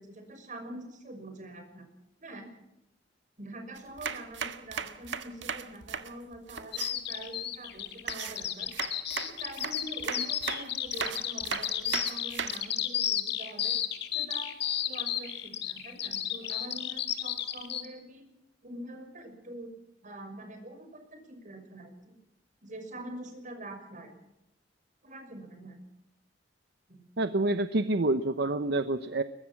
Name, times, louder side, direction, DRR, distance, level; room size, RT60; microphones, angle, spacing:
voice 1, 0.0-1.9 2.2-2.5 3.4-8.7 9.1-13.8 14.1-14.5 14.8-18.3 18.6-19.7 20.0-22.1 22.6-24.1 25.0-25.8 26.9-27.0, right 1 dB, 45° right, 5 dB, 6.0 m, -45 dB
sound 1, 3.8-6.9 8.1-12.6, right 6 dB, 90° right, 1.7 m, -37 dB
Bird vocalization bird call bird song, 6.7-17.9, left 10 dB, 65° left, 2.3 m, -32 dB
voice 2, 27.2-29.2, right 2 dB, 65° right, 11 dB, 1.0 m, -27 dB
23.0 x 20.5 x 6.1 m, 0.88 s
head